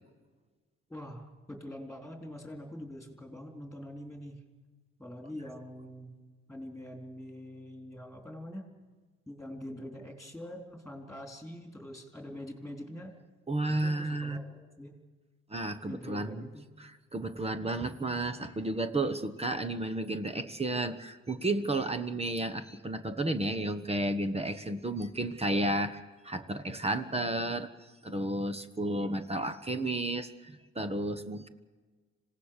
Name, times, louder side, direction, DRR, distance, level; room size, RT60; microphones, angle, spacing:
voice 1, 0.9-4.4 5.0-6.2 6.5-8.6 9.3-13.1 13.7-14.9 15.8-16.7, left 1 dB, ahead, 2 dB, 3.8 m, -44 dB
voice 2, 13.5-14.4 15.5-16.5 16.8-27.7 28.0-31.5, right 2 dB, 20° right, 8 dB, 1.2 m, -32 dB
26.0 x 17.0 x 6.7 m, 1.4 s
cardioid pair, 90°, 30 cm